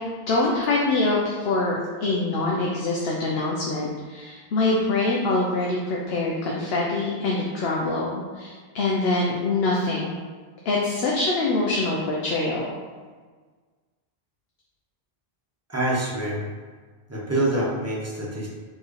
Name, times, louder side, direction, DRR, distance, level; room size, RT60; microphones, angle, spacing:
voice 1, 0.3-10.2 10.6-12.7, left 2 dB, 75° left, -3 dB, 0.8 m, -24 dB
voice 2, 15.7-16.5 17.1-18.5, right 1 dB, 15° right, -6 dB, 0.9 m, -26 dB
4.4 x 3.1 x 3.1 m, 1.5 s
omnidirectional pair, 1.0 m